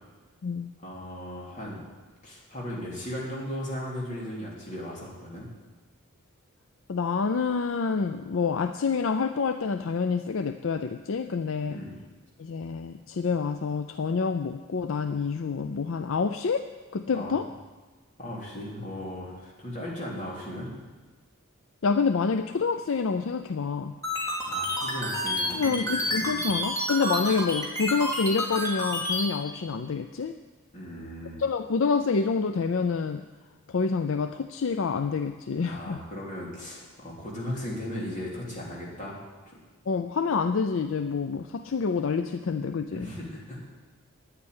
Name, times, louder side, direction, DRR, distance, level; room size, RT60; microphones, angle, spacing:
voice 1, 0.8-1.8 2.2-5.5 11.7-11.9 17.1-17.4 18.2-20.7 24.4-26.4 30.7-31.4 35.6-39.2 39.5-39.6 42.9-43.6, equal, 35° left, -4 dB, 3.3 m, -37 dB
voice 2, 6.9-11.8 12.4-17.5 21.8-23.9 25.5-30.3 31.4-33.2 33.7-36.0 39.9-43.1, left 5 dB, 65° left, 9 dB, 0.4 m, -27 dB
sound 1, 24.0-29.2, equal, 15° left, 2.9 m, -29 dB
9.6 x 8.8 x 9.5 m, 1.3 s
head